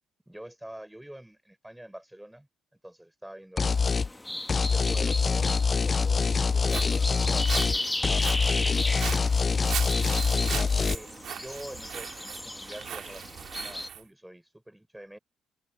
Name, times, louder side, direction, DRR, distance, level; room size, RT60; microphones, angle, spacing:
voice 1, 0.3-3.8 4.5-8.0 8.3-10.2 10.9-15.2, right 1 dB, 5° right, 6.5 m, -46 dB
sound 1, 3.6-4.1 4.5-7.8 8.0-10.9, left 5 dB, 35° left, 0.4 m, -25 dB
sound 2, 3.7-13.9, left 1 dB, 10° left, 2.0 m, -36 dB
Walk footsteps, 6.4-14.0, right 10 dB, 70° right, 2.3 m, -39 dB
cardioid pair, 90°, 0 cm